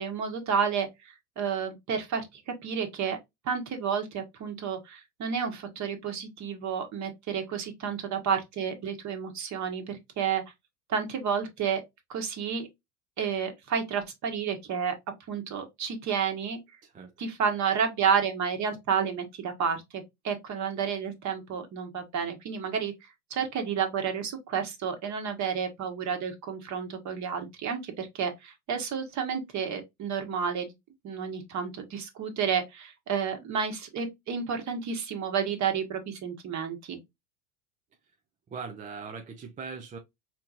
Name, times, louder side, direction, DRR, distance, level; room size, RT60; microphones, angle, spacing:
voice 1, 0.0-3.2 3.4-10.4 10.9-11.8 12.1-12.7 13.2-14.9 15.3-16.6 17.2-22.9 23.3-30.7 31.0-37.0, right 7 dB, 40° right, 1.3 m, -31 dB
voice 2, 16.8-17.1 38.5-40.0, right 5 dB, 20° right, 0.4 m, -40 dB
4.3 x 2.9 x 2.4 m
hypercardioid pair, 95°, 45 cm